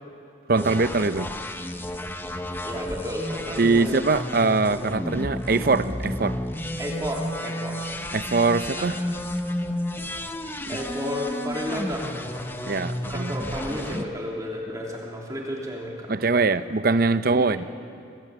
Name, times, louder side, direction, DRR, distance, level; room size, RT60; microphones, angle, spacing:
sound 1, 0.5-14.0, left 1 dB, 10° left, 1.0 m, -32 dB
voice 1, 0.5-1.3 3.6-6.4 8.1-8.9 12.7-13.4 16.1-17.7, right 3 dB, 55° right, 12 dB, 0.8 m, -22 dB
voice 2, 2.6-3.7 6.8-7.9 8.7-8.9 10.7-12.8 13.1-16.3 17.3-17.6, equal, 20° right, -2 dB, 3.1 m, -32 dB
26.0 x 17.0 x 8.8 m, 2.5 s
head